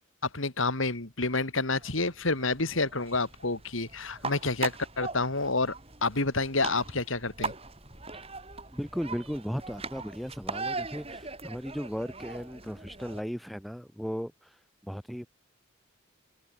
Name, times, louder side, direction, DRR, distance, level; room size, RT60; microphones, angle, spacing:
voice 1, 0.3-5.7 6.0-7.5, left 3 dB, 70° left, 2.9 m, -29 dB
sound 1, 1.7-13.2, right 4 dB, 30° right, 7.1 m, -40 dB
voice 2, 8.7-15.3, equal, ahead, 2.4 m, -36 dB
head